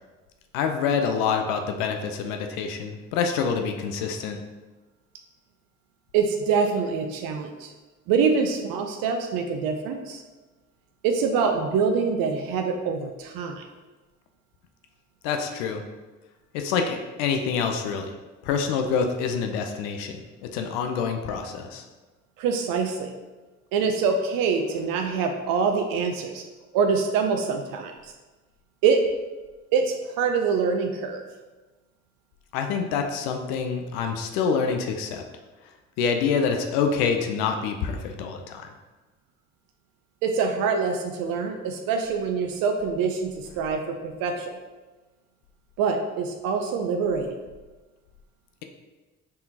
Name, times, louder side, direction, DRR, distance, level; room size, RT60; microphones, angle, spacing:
voice 1, 0.5-4.4 15.2-15.8 16.5-18.1 18.4-21.8 32.5-35.2 36.0-38.7, left 6 dB, 75° left, 5 dB, 0.5 m, -26 dB
voice 2, 6.1-7.7 8.1-10.2 11.0-13.6 22.4-23.1 23.7-26.4 26.7-28.1 28.8-29.0 29.7-31.2 40.2-44.5 45.8-47.4, right 5 dB, 65° right, 4 dB, 0.5 m, -25 dB
4.2 x 3.6 x 2.7 m, 1.2 s
hypercardioid pair, 45°, 37 cm